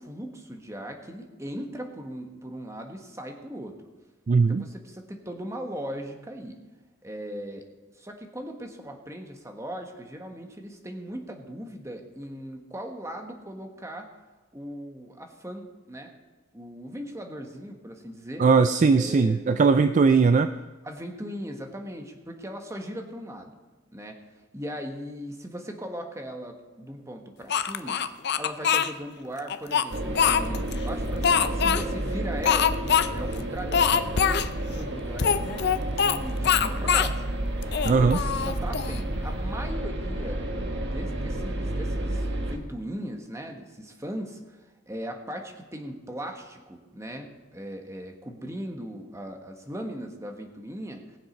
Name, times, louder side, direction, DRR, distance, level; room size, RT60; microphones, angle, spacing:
voice 1, 0.0-3.7 4.5-6.6 7.0-7.6 8.0-14.1 14.5-16.1 16.5-18.4 19.0-19.5 20.8-23.6 23.9-24.2 24.5-28.0 28.3-32.8 33.1-35.5 35.8-37.3 37.9-40.4 40.8-51.2, equal, 15° right, 3 dB, 1.3 m, -38 dB
voice 2, 4.3-4.7 18.4-20.5 37.8-38.2, right 4 dB, 35° right, 10 dB, 0.3 m, -19 dB
Speech, 27.5-28.9 29.5-30.8 31.2-31.8 32.4-33.1 33.3-33.4 33.7-34.5 35.2-36.2 36.4-37.1 37.6-39.0, left 7 dB, 55° left, 0.5 m, -23 dB
sound 1, 29.9-42.6, right 1 dB, 60° right, 1.4 m, -31 dB
19.5 x 7.3 x 5.2 m, 1.2 s
head